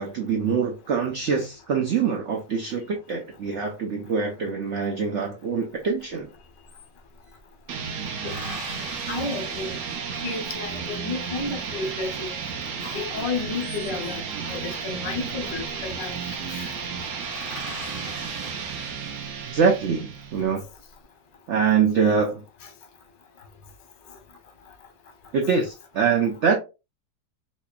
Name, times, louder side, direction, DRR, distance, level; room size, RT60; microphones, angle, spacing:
voice 1, 0.0-6.3 19.4-20.6 21.5-22.4 25.3-26.6, right 6 dB, 90° right, 0.6 m, -24 dB
sound 1, 6.0-6.1 6.3-7.4 8.1-10.7 13.3-14.3 15.5-15.9 16.2-16.3 16.6-16.7 17.0-19.5 20.1-20.8, left 2 dB, 30° left, 1.3 m, -42 dB
sound 2, 7.7-20.5, right 6 dB, 65° right, 0.8 m, -33 dB
voice 2, 9.1-9.8 10.2-12.4 12.8-14.2 14.5-16.1 16.5-16.7, left 4 dB, 80° left, 1.5 m, -32 dB
4.1 x 2.9 x 2.2 m
omnidirectional pair, 1.9 m